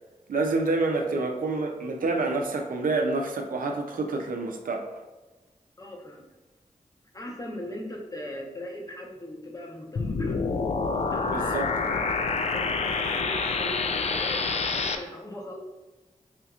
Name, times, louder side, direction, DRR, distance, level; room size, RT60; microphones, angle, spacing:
voice 1, 0.3-4.9 11.3-12.0, right 3 dB, 80° right, 3 dB, 0.5 m, -28 dB
voice 2, 5.8-6.3 7.1-10.4 11.1-11.6 12.5-15.6, left 1 dB, 25° left, 0 dB, 0.9 m, -39 dB
sound 1, 10.0-15.0, left 4 dB, 50° left, 0.4 m, -27 dB
5.0 x 2.8 x 2.4 m, 1.1 s
cardioid pair, 40°, 14 cm